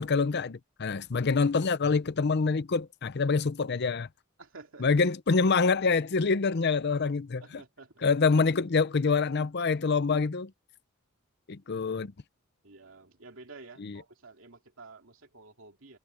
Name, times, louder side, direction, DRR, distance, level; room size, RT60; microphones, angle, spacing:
voice 1, 0.0-4.1 4.8-7.4 8.0-10.5 11.5-12.1 13.8-14.0, left 4 dB, 55° left, 0.6 m, -26 dB
voice 2, 4.4-4.9 7.4-8.1 12.6-16.0, right 3 dB, 70° right, 2.8 m, -51 dB
head